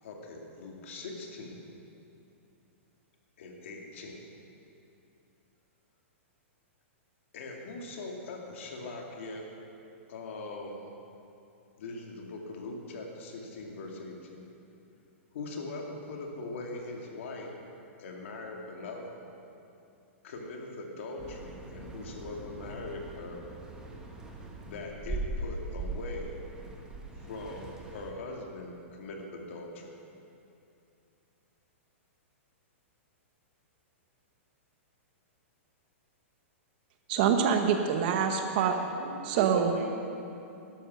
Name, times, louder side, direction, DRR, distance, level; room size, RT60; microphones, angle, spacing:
voice 1, 0.0-1.6 3.4-4.3 7.3-9.5 10.1-10.8 11.8-14.5 15.3-17.5 18.0-19.2 20.2-23.5 24.6-26.3 27.2-29.9, left 2 dB, 65° left, 0 dB, 2.4 m, -41 dB
sound 1, 21.2-28.1, right 2 dB, 10° right, 1.3 m, -40 dB
voice 2, 37.1-38.7 39.2-39.7, right 7 dB, 45° right, 5 dB, 0.9 m, -25 dB
voice 3, 38.5-40.0, right 3 dB, 65° right, 1 dB, 2.8 m, -37 dB
12.0 x 11.5 x 6.3 m, 2.7 s
hypercardioid pair, 155°, 7 cm